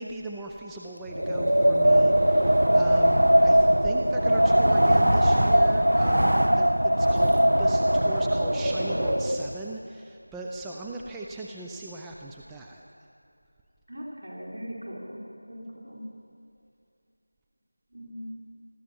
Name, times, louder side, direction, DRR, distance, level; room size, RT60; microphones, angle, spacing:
voice 1, 0.0-7.3 7.6-12.9, right 2 dB, 5° right, -1 dB, 0.4 m, -39 dB
Wind, 1.1-9.5, right 1 dB, 80° right, 1.0 m, -21 dB
voice 2, 13.9-15.2 15.5-16.0 17.9-18.3, equal, 65° right, -3 dB, 4.6 m, -40 dB
20.0 x 14.0 x 4.6 m, 2.6 s
figure-of-eight pair, 170°, 0 cm